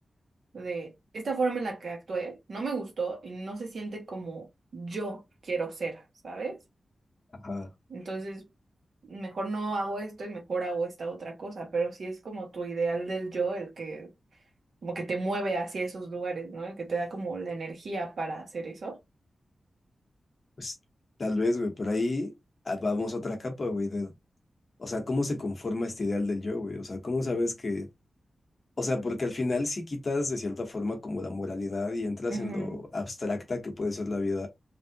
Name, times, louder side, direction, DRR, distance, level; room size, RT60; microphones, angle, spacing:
voice 1, 0.5-4.5 4.7-6.6 7.9-8.4 9.1-14.1 14.8-19.0 32.3-32.8, right 3 dB, 60° right, 1.1 m, -33 dB
voice 2, 21.2-22.3 22.6-24.1 24.8-27.9 28.8-34.5, left 2 dB, 35° left, 1.0 m, -30 dB
3.3 x 2.6 x 2.8 m
wide cardioid pair, 165°, 0 cm